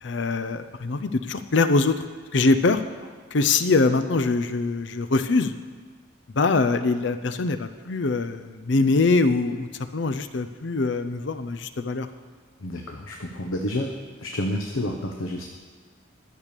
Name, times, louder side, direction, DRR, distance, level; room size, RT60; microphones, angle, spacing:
voice 1, 0.0-2.0 2.3-2.8 3.3-5.6 6.3-12.1, left 3 dB, 60° left, 11 dB, 0.6 m, -23 dB
voice 2, 12.6-13.9 14.2-15.4, left 1 dB, 90° left, 3 dB, 0.9 m, -29 dB
12.0 x 6.8 x 6.8 m, 1.5 s
head